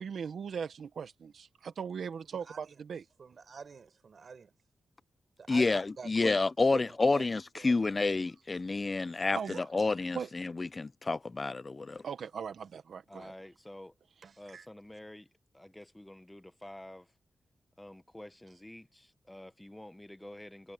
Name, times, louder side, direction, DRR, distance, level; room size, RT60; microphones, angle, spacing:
voice 1, 0.0-3.0 9.3-9.6 10.1-10.3 12.0-13.3 14.5-14.6, right 6 dB, 75° right, 1.1 m, -39 dB
voice 2, 2.3-2.8 3.2-4.5 5.4-6.4 6.7-7.3 7.5-7.8 14.2-14.4, right 5 dB, 55° right, 4.8 m, -46 dB
voice 3, 5.5-9.4 9.7-12.0, left 3 dB, 30° left, 0.5 m, -29 dB
voice 4, 13.1-13.9 14.4-17.1 17.8-20.7, left 1 dB, 10° left, 1.0 m, -49 dB
wide cardioid pair, 115°, 0 cm